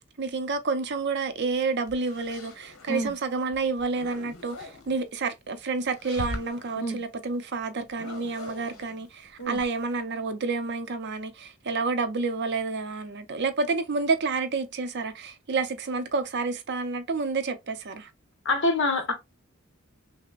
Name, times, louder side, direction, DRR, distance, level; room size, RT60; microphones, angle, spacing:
voice 1, 0.2-18.1, right 4 dB, 55° right, 0.6 m, -29 dB
sound 1, 1.6-3.1 3.5-5.0 5.8-6.8 7.9-10.0, left 2 dB, 80° left, 1.0 m, -41 dB
voice 2, 18.4-19.1, left 2 dB, 60° left, 1.1 m, -26 dB
5.8 x 2.1 x 2.4 m
head